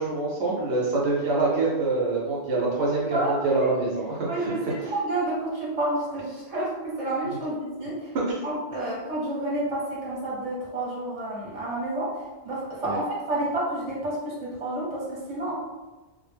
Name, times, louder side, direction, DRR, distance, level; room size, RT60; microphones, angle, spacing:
voice 1, 0.0-4.7 12.8-13.0, right 3 dB, 75° right, -4 dB, 0.9 m, -25 dB
voice 2, 3.1-3.7 4.3-8.1 8.4-12.2 12.4-15.5, right 1 dB, 35° right, -6 dB, 0.9 m, -30 dB
2.3 x 2.0 x 3.2 m, 1.2 s
omnidirectional pair, 1.1 m